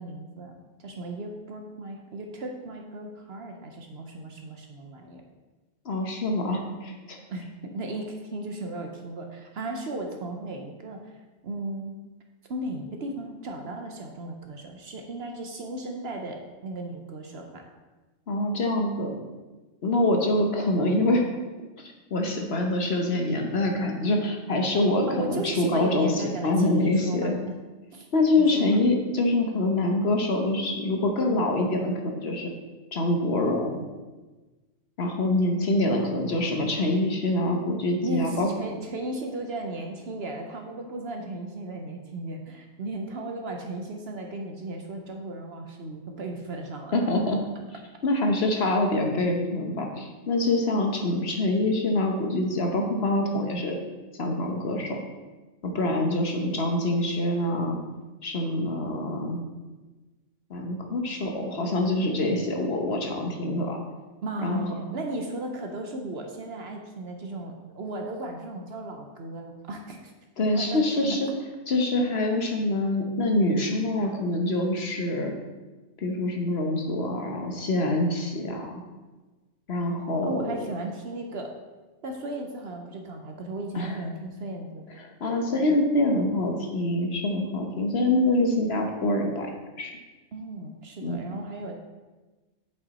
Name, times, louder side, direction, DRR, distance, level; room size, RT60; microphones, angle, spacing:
voice 1, 0.0-5.2 7.3-7.4 7.7-11.1 11.4-12.0 12.5-17.6 25.1-27.5 27.9-28.1 28.4-28.8 38.0-47.0 64.2-70.1 70.5-71.2 80.2-81.5 82.0-84.8 90.3-91.7, right 2 dB, 55° right, 3 dB, 0.9 m, -36 dB
voice 2, 5.8-7.2 18.3-19.1 19.8-21.3 22.1-27.3 28.1-32.5 32.9-33.8 35.0-38.5 46.9-47.4 48.0-53.8 54.2-55.0 55.6-57.8 58.2-59.4 60.5-63.8 64.4-64.7 70.4-71.3 71.7-75.3 76.0-78.8 79.7-80.5 83.7-83.9 85.0-89.5 89.8-89.9 91.0-91.2, left 2 dB, 50° left, 2 dB, 1.1 m, -25 dB
8.2 x 5.5 x 4.1 m, 1.2 s
omnidirectional pair, 1.4 m